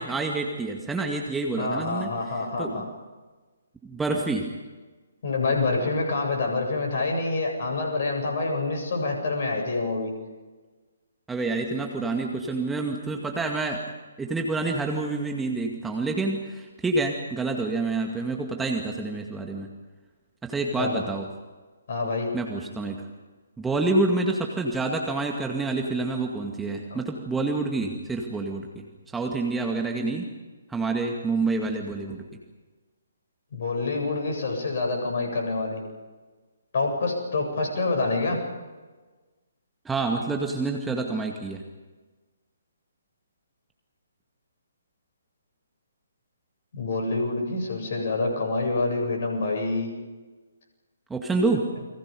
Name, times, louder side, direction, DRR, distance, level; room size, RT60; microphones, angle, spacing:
voice 1, 0.0-2.1 2.6-2.8 3.8-4.5 11.3-13.8 14.2-19.7 20.4-21.3 22.3-23.0 23.6-28.8 29.1-30.3 30.7-32.2 39.9-41.6 51.1-51.7, right 3 dB, 5° right, 1 dB, 2.1 m, -27 dB
voice 2, 1.6-2.9 5.2-10.1 20.8-21.0 21.9-22.3 26.9-27.0 33.5-35.8 36.7-38.4 46.7-50.0, left 3 dB, 50° left, 3 dB, 7.9 m, -27 dB
30.0 x 23.5 x 5.4 m, 1.3 s
figure-of-eight pair, 135°, 0 cm